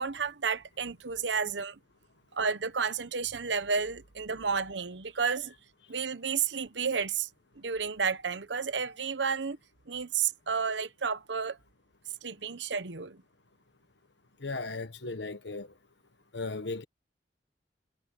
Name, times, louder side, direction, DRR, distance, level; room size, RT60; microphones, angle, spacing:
voice 1, 0.0-1.8 2.3-5.5 5.9-7.3 7.6-9.6 9.9-11.6 12.2-13.2, right 6 dB, 80° right, 1.0 m, -31 dB
voice 2, 14.4-15.7 16.3-16.8, left 3 dB, 75° left, 1.4 m, -36 dB
head